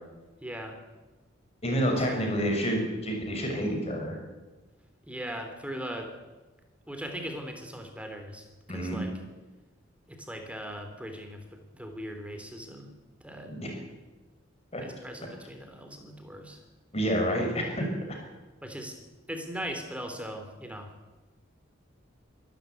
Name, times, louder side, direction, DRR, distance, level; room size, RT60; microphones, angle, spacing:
voice 1, 0.4-0.8 2.0-2.3 5.0-6.1 6.9-9.1 10.1-12.9 13.2-13.5 14.8-16.6 18.6-19.0 19.3-20.9, equal, 5° right, 5 dB, 3.3 m, -39 dB
voice 2, 1.6-4.2 8.7-9.0 13.4-13.7 14.7-14.8 16.9-18.2, equal, 30° left, 2 dB, 6.4 m, -29 dB
24.5 x 13.5 x 9.4 m, 1.2 s
head